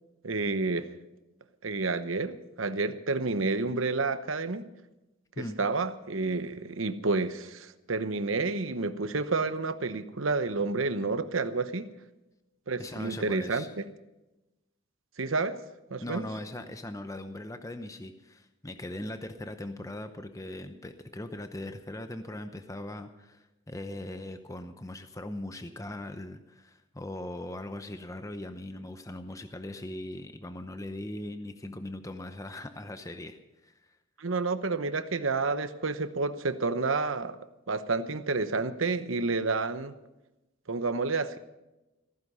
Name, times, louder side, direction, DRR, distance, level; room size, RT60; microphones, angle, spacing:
voice 1, 0.2-0.9 1.6-4.7 5.4-11.9 12.7-13.6 15.2-15.6 15.9-16.2 34.2-37.4 37.7-39.9 40.7-41.4, right 3 dB, 75° right, 11 dB, 1.0 m, -30 dB
voice 2, 12.8-13.7 16.0-34.0, left 1 dB, 15° left, 8 dB, 0.7 m, -40 dB
15.5 x 14.5 x 5.5 m, 0.99 s
head